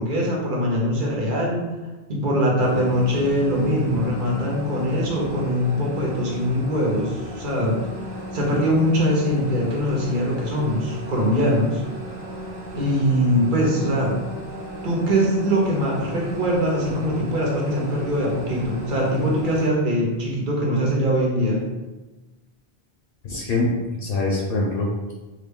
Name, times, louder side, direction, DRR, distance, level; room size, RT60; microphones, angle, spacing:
voice 1, 0.0-1.7 2.1-7.8 8.3-11.8 12.7-14.1 14.8-21.6, equal, 55° right, -3 dB, 1.0 m, -22 dB
sound 1, 2.6-19.7, equal, 80° right, 1.1 m, -35 dB
voice 2, 23.2-25.1, left 2 dB, 65° left, -1 dB, 0.7 m, -24 dB
3.2 x 2.4 x 3.5 m, 1.2 s
omnidirectional pair, 1.1 m